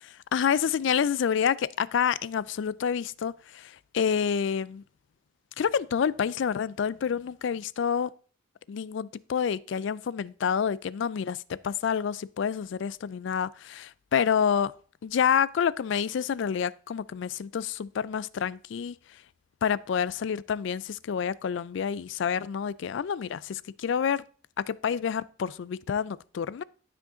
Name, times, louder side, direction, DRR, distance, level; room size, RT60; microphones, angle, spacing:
voice 1, 0.3-4.8 5.6-8.1 8.7-14.7 15.0-18.9 19.6-24.2 24.7-26.6, left 7 dB, 65° left, 0.3 m, -28 dB
12.0 x 5.1 x 3.7 m
head